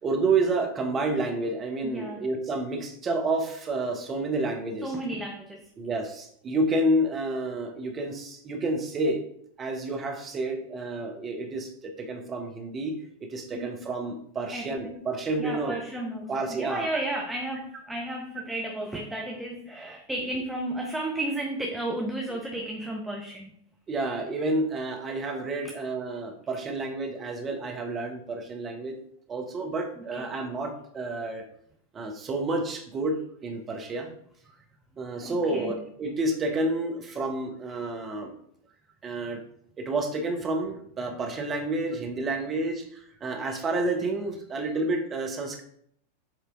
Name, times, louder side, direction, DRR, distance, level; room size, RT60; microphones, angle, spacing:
voice 1, 0.0-4.9 5.8-9.2 9.6-13.0 13.3-15.8 16.3-16.9 23.9-29.0 29.3-31.4 31.9-33.2 33.4-34.1 35.0-38.3 39.0-39.4 39.8-45.6, right 2 dB, 25° right, 3 dB, 1.1 m, -29 dB
voice 2, 1.8-2.3 4.8-5.7 13.5-13.8 14.5-15.0 15.4-23.5 30.0-30.3 35.2-35.7 43.4-43.5, right 1 dB, 5° right, 0 dB, 0.7 m, -33 dB
7.6 x 3.3 x 3.8 m, 0.66 s
figure-of-eight pair, 90°, 0 cm